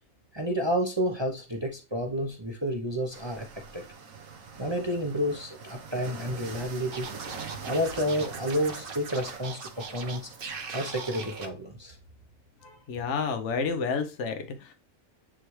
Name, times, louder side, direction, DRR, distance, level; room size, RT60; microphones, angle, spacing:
voice 1, 0.3-3.5 3.7-3.8 4.6-7.1 7.7-10.3 10.7-12.0 12.6-12.8, equal, 25° right, 1 dB, 0.7 m, -30 dB
sound 1, 3.1-11.5, right 5 dB, 75° right, 1.5 m, -44 dB
Scratching (performance technique), 6.9-11.5, right 5 dB, 50° right, 0.9 m, -40 dB
voice 2, 12.9-14.7, left 5 dB, 60° left, 7 dB, 1.2 m, -30 dB
9.8 x 3.3 x 3.2 m, 0.31 s
omnidirectional pair, 1.4 m